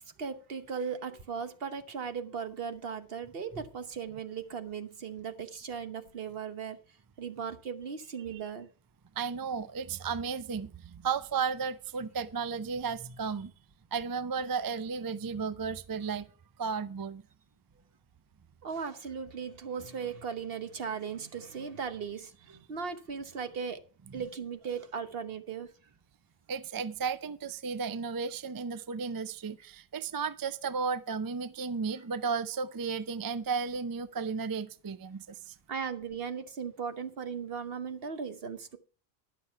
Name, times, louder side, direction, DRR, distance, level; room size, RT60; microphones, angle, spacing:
voice 1, 0.2-6.8 7.2-8.7 18.6-23.8 24.1-25.7 35.7-38.8, right 6 dB, 65° right, 1.3 m, -37 dB
voice 2, 9.2-13.5 13.9-16.3 16.6-17.2 26.5-35.6, right 5 dB, 35° right, 0.3 m, -34 dB
11.5 x 6.8 x 5.7 m
omnidirectional pair, 1.1 m